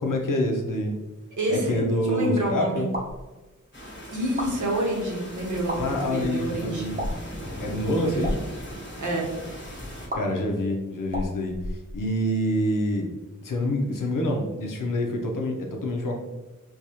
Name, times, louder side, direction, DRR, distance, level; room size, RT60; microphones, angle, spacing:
voice 1, 0.0-1.0 1.5-2.9 5.8-7.1 7.6-8.3 10.1-11.6 11.9-13.1 13.4-16.2, left 1 dB, 85° left, 1 dB, 0.6 m, -26 dB
voice 2, 1.4-1.8 2.1-2.9 4.1-7.0 7.9-8.3 9.0-9.3, right 1 dB, 70° right, -1 dB, 1.0 m, -28 dB
sound 1, 2.9-3.2 4.2-4.5 5.5-5.8 6.9-7.3 8.1-8.4 10.1-10.2 11.1-12.2, equal, 30° right, 0.8 m, -31 dB
sound 2, 3.7-10.1, equal, 35° left, 1.2 m, -39 dB
4.6 x 2.3 x 2.7 m, 1.1 s
wide cardioid pair, 60°, 31 cm